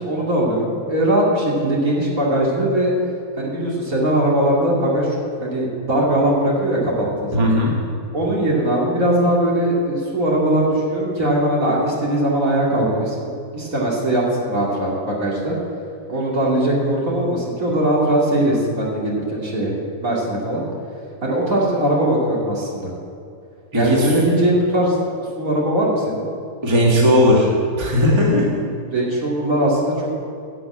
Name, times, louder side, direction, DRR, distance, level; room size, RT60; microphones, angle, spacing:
voice 1, 0.0-2.9 3.4-7.5 8.1-15.6 16.1-19.7 20.0-20.6 21.2-22.9 23.7-25.0 25.4-26.3 28.9-30.1, right 1 dB, 60° right, -4 dB, 2.8 m, -20 dB
voice 2, 7.3-7.7 23.7-24.1 26.6-27.5 27.8-28.5, left 1 dB, 20° right, -3 dB, 1.9 m, -16 dB
11.5 x 6.2 x 8.6 m, 2.6 s
omnidirectional pair, 1.6 m